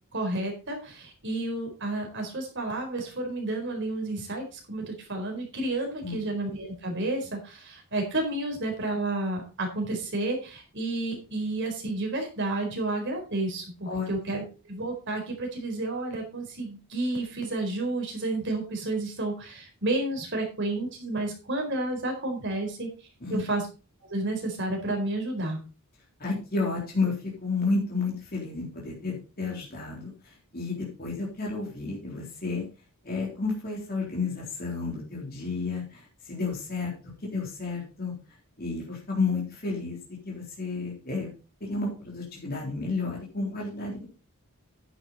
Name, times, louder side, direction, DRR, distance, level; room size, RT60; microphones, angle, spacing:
voice 1, 0.1-22.9 23.3-23.7 24.0-25.6, right 2 dB, 55° right, 2 dB, 4.4 m, -31 dB
voice 2, 13.9-14.2 23.2-23.4 26.2-27.1 27.4-32.7 33.0-36.9 37.2-38.1 38.6-40.0 40.3-41.3 41.6-44.1, left 3 dB, 40° left, -3 dB, 3.7 m, -31 dB
10.5 x 8.5 x 4.3 m, 0.34 s
head